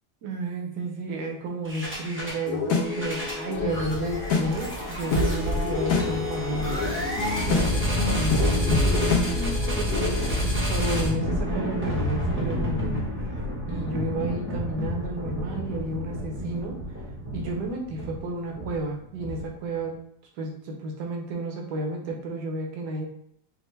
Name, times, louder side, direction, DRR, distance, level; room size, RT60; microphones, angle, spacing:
voice 1, 0.2-6.9 7.5-12.9 13.7-16.8 17.3-19.9 20.4-23.1, right 2 dB, 80° right, 1 dB, 1.4 m, -32 dB
sound 1, 1.6-2.4 2.8-19.7, equal, 15° right, 0.4 m, -29 dB
sound 2, 2.5-10.4, left 4 dB, 65° left, 1.1 m, -27 dB
5.5 x 2.1 x 3.2 m, 0.73 s
omnidirectional pair, 1.8 m